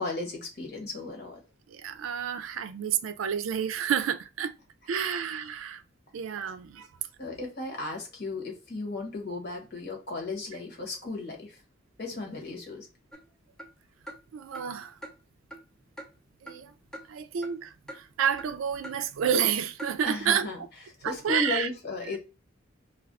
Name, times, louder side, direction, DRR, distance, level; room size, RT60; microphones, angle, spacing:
voice 1, 0.0-1.4 7.2-11.6 12.0-12.9 20.0-20.6 21.0-22.2, left 3 dB, 55° left, 1.0 m, -35 dB
voice 2, 1.7-4.5 4.9-5.8 6.1-6.9 14.3-14.9 16.4-16.7 17.1-20.5 21.0-21.7 22.0-22.2, right 8 dB, 85° right, 0.4 m, -29 dB
sound 1, 13.1-13.3 13.6-13.7 14.1-14.2 14.5-14.7 15.0-15.1 15.5-15.6 16.0-16.1 16.5-16.6 16.9-17.1 17.4-17.5 17.9-18.0 18.4-18.5 18.8-19.0 19.3-19.5 19.8-19.9 20.3-20.4, right 1 dB, 5° left, 0.5 m, -43 dB
2.4 x 2.3 x 3.4 m
head